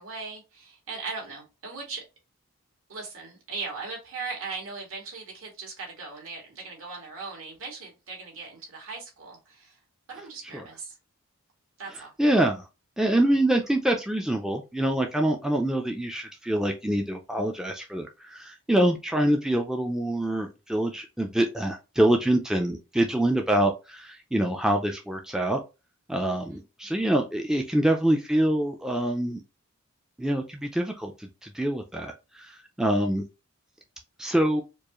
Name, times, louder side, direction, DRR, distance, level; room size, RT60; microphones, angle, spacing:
voice 1, 0.0-2.0 2.9-9.8 10.1-11.0 11.8-12.1 26.5-26.6, right 4 dB, 70° right, 2.0 m, -39 dB
voice 2, 12.2-12.6 13.0-25.6 26.1-29.4 30.2-33.2 34.2-34.6, right 1 dB, 5° right, 0.3 m, -25 dB
4.5 x 2.4 x 3.0 m
head